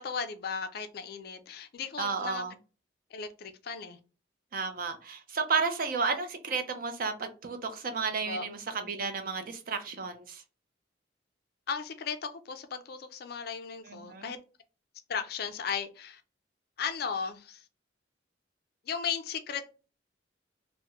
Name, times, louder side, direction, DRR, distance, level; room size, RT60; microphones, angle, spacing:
voice 1, 0.0-2.4 3.1-4.0 8.3-8.5 11.7-14.4 15.1-16.2 16.8-17.6 18.9-19.6, left 6 dB, 55° left, 0.4 m, -36 dB
voice 2, 2.0-2.5 4.5-10.4 13.8-14.3, right 5 dB, 45° right, 0.5 m, -32 dB
3.0 x 2.1 x 3.4 m
head